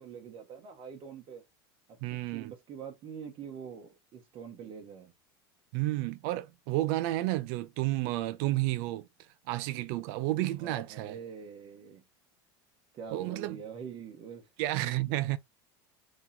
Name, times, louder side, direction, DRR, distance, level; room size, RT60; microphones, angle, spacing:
voice 1, 0.0-1.4 1.9-5.1 10.6-12.0 12.9-14.5, right 7 dB, 45° right, 1.3 m, -45 dB
voice 2, 2.0-2.5 5.7-9.1 9.5-11.2 13.1-13.6 14.6-15.4, right 17 dB, 65° right, 0.6 m, -31 dB
3.6 x 3.1 x 2.7 m
hypercardioid pair, 100°, 13 cm